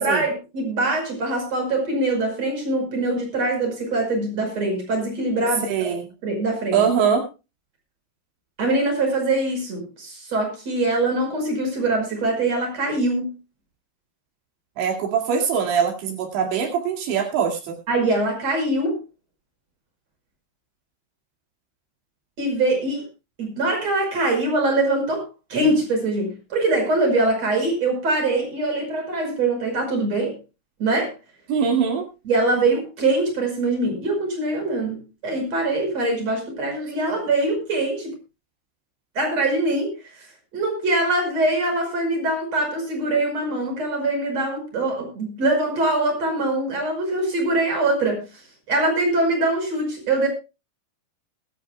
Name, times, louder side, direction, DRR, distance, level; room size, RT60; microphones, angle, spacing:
voice 1, 0.0-5.9 6.2-6.8 8.6-13.2 17.9-19.0 22.4-23.0 23.4-30.4 30.8-31.1 32.2-38.1 39.1-40.2 40.5-48.3 48.7-50.3, right 2 dB, 35° right, 3 dB, 6.5 m, -23 dB
voice 2, 5.7-6.1 6.7-7.3 14.8-17.8 31.5-32.1, right 7 dB, 75° right, 2 dB, 4.5 m, -22 dB
22.5 x 12.5 x 2.2 m, 0.28 s
omnidirectional pair, 5.2 m